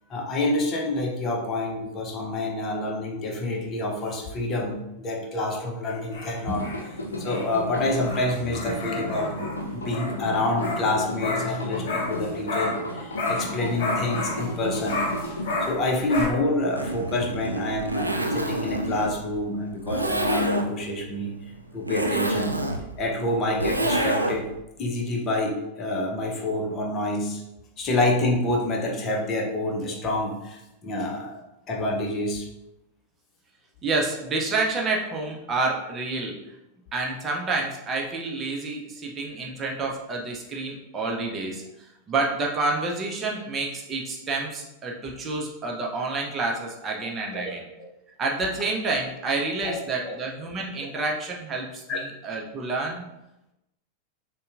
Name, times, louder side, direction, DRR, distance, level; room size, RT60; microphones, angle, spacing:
voice 1, 0.1-9.3 9.7-15.0 15.6-21.3 21.7-22.6 23.0-24.5 24.8-27.4 27.8-31.4 31.7-32.5 47.4-47.5 49.6-50.1 50.8-50.9 51.9-52.0, left 2 dB, 30° left, 0 dB, 0.8 m, -27 dB
sound 1, 5.9-12.9 13.1-16.3, left 2 dB, 55° left, 1.0 m, -32 dB
sound 2, 6.5-15.7, left 1 dB, 75° left, 0.5 m, -34 dB
Zipper (clothing), 16.6-24.6, right 1 dB, 85° right, 0.3 m, -28 dB
voice 2, 33.8-36.3 36.9-47.7 48.2-53.0, right 3 dB, 25° right, -1 dB, 0.7 m, -29 dB
6.5 x 2.3 x 2.5 m, 0.90 s
figure-of-eight pair, 90°, 0 cm